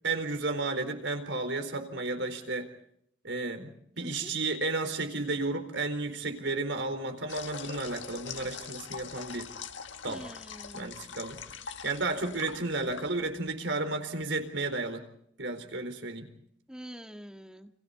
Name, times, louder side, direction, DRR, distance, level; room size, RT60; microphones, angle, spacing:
voice 1, 0.0-2.7 3.2-9.5 10.0-10.3 10.7-11.4 11.8-15.0 15.4-16.3, right 3 dB, 75° right, 7 dB, 4.2 m, -33 dB
voice 2, 4.0-4.3 10.1-10.9 16.7-17.7, equal, 5° right, 5 dB, 1.9 m, -45 dB
sound 1, 7.3-13.5, left 7 dB, 75° left, 1.7 m, -43 dB
29.5 x 26.5 x 4.1 m, 0.67 s
head